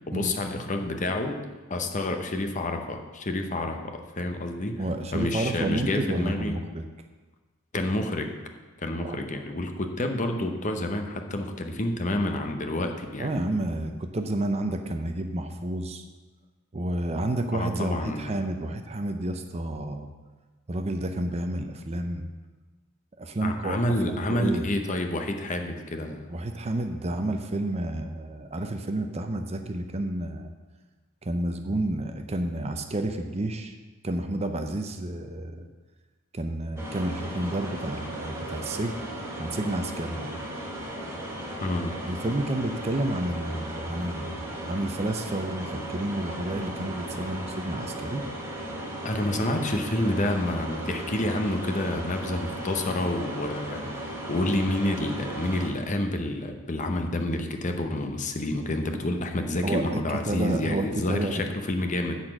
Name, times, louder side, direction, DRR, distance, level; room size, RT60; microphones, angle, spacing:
voice 1, 0.1-1.4 1.7-4.8 5.1-6.5 7.7-8.3 8.8-13.3 17.5-18.4 23.4-26.3 41.6-41.9 49.0-62.2, left 1 dB, 35° left, 5 dB, 0.8 m, -29 dB
voice 2, 4.8-6.8 9.0-9.2 13.2-16.0 16.7-20.1 20.7-22.3 23.2-23.8 24.1-24.6 26.3-30.5 31.2-33.7 34.0-35.7 36.3-38.9 39.4-40.4 42.0-48.2 49.3-49.4 59.6-59.8 60.3-61.5, right 1 dB, 30° right, 6 dB, 0.6 m, -30 dB
sound 1, 36.8-55.7, right 1 dB, 10° right, 1.6 m, -36 dB
10.5 x 4.2 x 7.7 m, 1.3 s
head